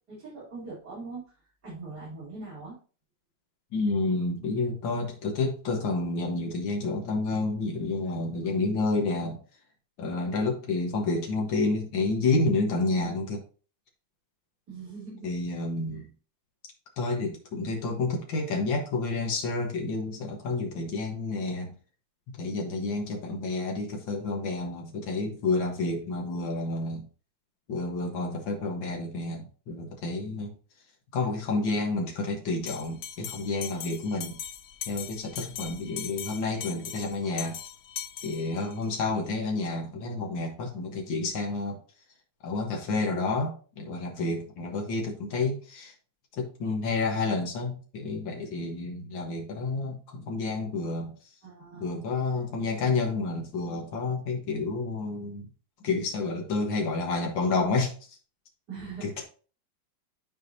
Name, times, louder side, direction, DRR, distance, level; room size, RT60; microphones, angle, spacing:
voice 1, 0.1-2.8 14.7-15.3 15.9-16.1 51.4-51.9 58.7-59.2, right 4 dB, 60° right, -9 dB, 4.0 m, -42 dB
voice 2, 3.7-9.4 10.0-13.4 15.2-16.1 17.0-21.8 22.4-27.0 27.7-30.5 31.1-34.4 34.9-37.6 38.2-41.8 42.4-45.9 46.4-51.1 51.8-55.5 55.8-57.9 59.0-59.2, left 3 dB, 80° left, 1 dB, 2.2 m, -29 dB
Bell, 32.7-38.9, left 9 dB, 65° left, 1.0 m, -40 dB
10.5 x 4.8 x 2.7 m, 0.38 s
omnidirectional pair, 2.0 m